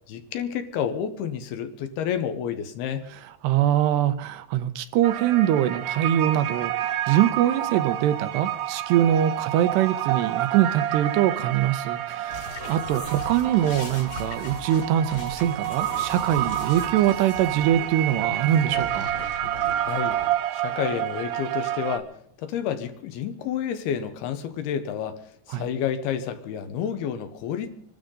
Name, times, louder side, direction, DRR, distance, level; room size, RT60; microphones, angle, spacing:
voice 1, 0.1-3.1 19.8-20.2 20.5-22.1 22.4-25.2 25.5-27.7, left 8 dB, 75° left, 9 dB, 3.0 m, -29 dB
voice 2, 3.4-19.1 25.5-25.7, right 11 dB, 90° right, 11 dB, 3.0 m, -23 dB
sound 1, 5.0-22.0, right 12 dB, 70° right, 1.9 m, -29 dB
sound 2, 12.3-20.3, left 3 dB, 60° left, 3.7 m, -39 dB
26.0 x 13.0 x 3.9 m, 0.66 s
omnidirectional pair, 4.8 m